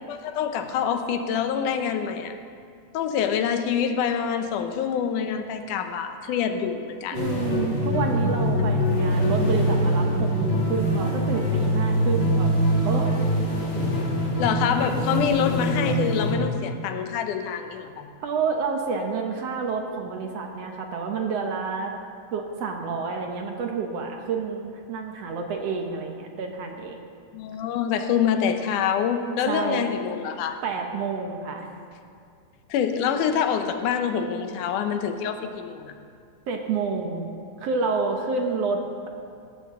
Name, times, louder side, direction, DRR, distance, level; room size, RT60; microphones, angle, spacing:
voice 1, 0.1-2.3 2.9-7.3 14.4-18.1 27.3-30.6 32.7-35.9, left 7 dB, 90° left, 7 dB, 2.4 m, -26 dB
sound 1, 7.1-16.4, equal, 40° left, 2.6 m, -23 dB
voice 2, 7.1-13.2 18.2-21.9 22.3-27.0 29.5-29.9 30.6-31.7 36.5-37.3 37.6-38.8, right 5 dB, 65° right, 3 dB, 1.9 m, -29 dB
17.0 x 13.5 x 3.8 m, 2.3 s
omnidirectional pair, 3.5 m